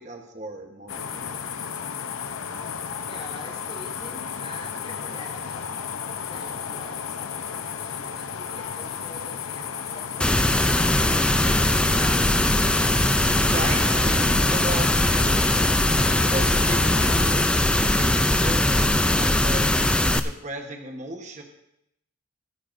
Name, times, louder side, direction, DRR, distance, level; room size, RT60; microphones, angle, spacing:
voice 1, 0.0-1.4 13.3-15.1 16.0-19.8 20.2-21.4, right 1 dB, 35° right, 3 dB, 1.1 m, -36 dB
sound 1, 0.9-17.5, left 7 dB, 80° left, 0.7 m, -33 dB
voice 2, 3.1-5.9 6.2-10.5 11.0-12.3, left 2 dB, 30° left, -2 dB, 4.1 m, -44 dB
sound 2, 10.2-20.2, left 1 dB, 5° left, 0.3 m, -20 dB
23.0 x 10.0 x 2.6 m, 0.79 s
head